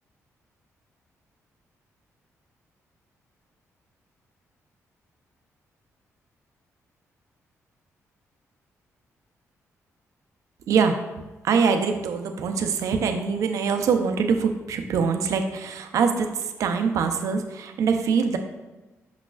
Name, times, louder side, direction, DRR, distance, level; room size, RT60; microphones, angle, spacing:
voice 1, 10.7-11.0 11.4-18.4, right 5 dB, 75° right, 6 dB, 0.6 m, -23 dB
6.4 x 6.1 x 2.4 m, 1.1 s
cardioid pair, 125°, 6 cm